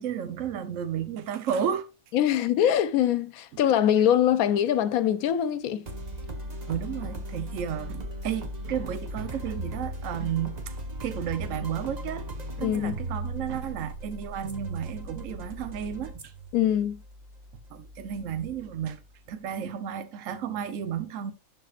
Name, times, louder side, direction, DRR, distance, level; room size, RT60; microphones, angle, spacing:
voice 1, 0.0-1.9 6.7-10.8 11.0-12.3 12.6-16.3 17.7-19.0 19.3-21.3, right 8 dB, 70° right, 1.1 m, -32 dB
voice 2, 2.1-5.9 12.6-13.0 16.5-17.0, left 10 dB, 85° left, 1.1 m, -23 dB
sound 1, 5.9-19.2, right 1 dB, 35° right, 1.0 m, -38 dB
11.5 x 4.2 x 2.4 m
omnidirectional pair, 1.5 m